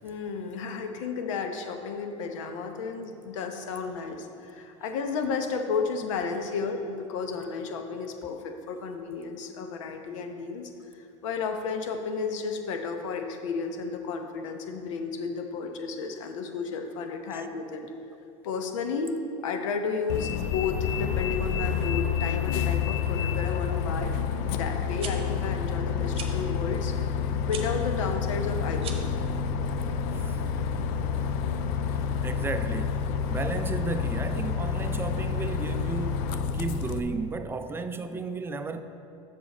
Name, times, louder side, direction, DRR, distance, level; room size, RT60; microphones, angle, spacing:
voice 1, 0.0-17.9 18.4-19.2 19.4-24.2 24.5-27.0 27.5-29.1, left 5 dB, 75° left, 5 dB, 0.8 m, -32 dB
Bus, 20.1-37.0, left 6 dB, 60° left, 0.5 m, -29 dB
sound 1, 25.0-25.1 26.1-26.3 27.5-27.7 28.7-29.1, right 6 dB, 35° right, 1.0 m, -38 dB
voice 2, 32.2-38.8, right 3 dB, 15° right, 9 dB, 0.4 m, -34 dB
7.0 x 6.4 x 4.2 m, 2.6 s
hypercardioid pair, 95°, 16 cm